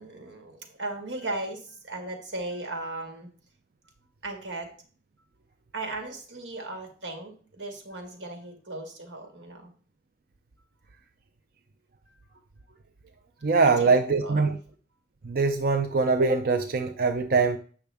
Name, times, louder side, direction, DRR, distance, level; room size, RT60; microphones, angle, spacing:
voice 1, 0.0-3.3 4.2-4.7 5.7-9.7 13.6-13.9 14.2-14.5, right 2 dB, 90° right, 1.8 m, -37 dB
voice 2, 13.4-14.6 15.2-17.6, right 4 dB, 55° right, 0.5 m, -23 dB
8.3 x 6.0 x 3.4 m
head